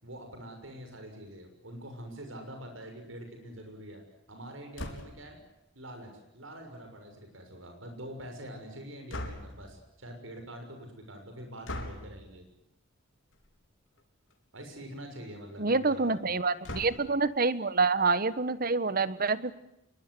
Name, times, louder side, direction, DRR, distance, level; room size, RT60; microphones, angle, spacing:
voice 1, 0.0-4.0 4.3-5.4 5.7-12.4 14.5-16.4, right 1 dB, 75° right, 5 dB, 6.5 m, -45 dB
sound 1, 4.7-5.3 9.1-9.7 11.6-12.1 13.3-13.6 14.0-14.1 14.3-14.4 16.6-17.2, left 1 dB, 70° left, 4.5 m, -39 dB
voice 2, 15.6-19.5, right 4 dB, 45° right, 15 dB, 1.4 m, -27 dB
28.0 x 23.0 x 8.0 m, 0.82 s
head